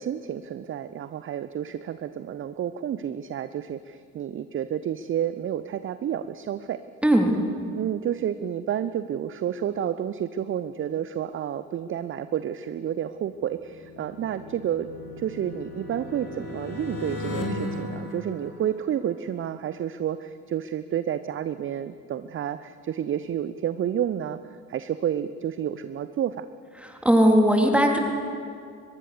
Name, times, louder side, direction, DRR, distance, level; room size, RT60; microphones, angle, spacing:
voice 1, 0.0-6.8 7.8-14.9 15.2-26.5, right 10 dB, 30° right, 13 dB, 0.7 m, -30 dB
sound 1, 13.3-19.1, left 1 dB, 35° left, 5.5 m, -36 dB
voice 2, 26.8-28.0, equal, 5° right, 2 dB, 3.7 m, -19 dB
23.0 x 21.0 x 6.8 m, 2.2 s
figure-of-eight pair, 55°, 41 cm